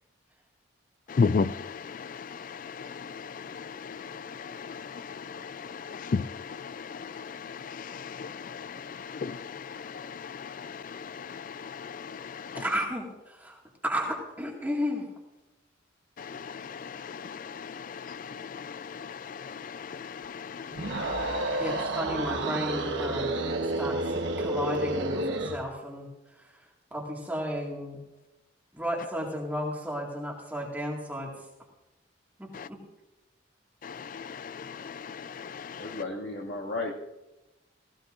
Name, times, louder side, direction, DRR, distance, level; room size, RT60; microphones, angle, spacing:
voice 1, 1.1-12.6 16.2-21.9 32.5-32.7 33.8-36.0, left 5 dB, 40° left, 0.3 m, -36 dB
voice 2, 12.6-15.1 21.6-23.3 23.6-26.6 26.9-28.0 28.7-31.3 32.4-32.8, equal, 10° right, 1.9 m, -33 dB
sound 1, 20.7-25.6, right 2 dB, 65° right, 1.2 m, -30 dB
voice 3, 35.8-36.9, left 2 dB, 60° left, 2.1 m, -34 dB
16.5 x 16.5 x 2.5 m
head